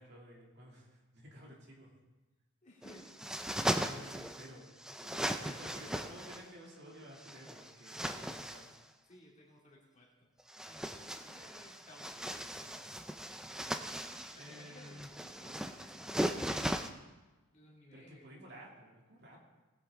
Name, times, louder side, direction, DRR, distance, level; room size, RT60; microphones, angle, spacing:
voice 1, 0.0-1.9 3.7-4.7 5.4-8.7 14.4-15.1 17.9-19.4, equal, 50° right, -2 dB, 2.5 m, -52 dB
voice 2, 2.6-3.4 3.8-4.0 5.0-5.7 9.1-10.3 10.6-12.8 13.9-16.5 17.5-18.4, left 1 dB, 35° left, -3 dB, 2.2 m, -58 dB
sound 1, 2.8-4.5 4.8-6.5 7.2-8.8 10.4-16.9, right 1 dB, 5° right, 0.4 m, -38 dB
19.0 x 8.3 x 3.6 m, 1.2 s
head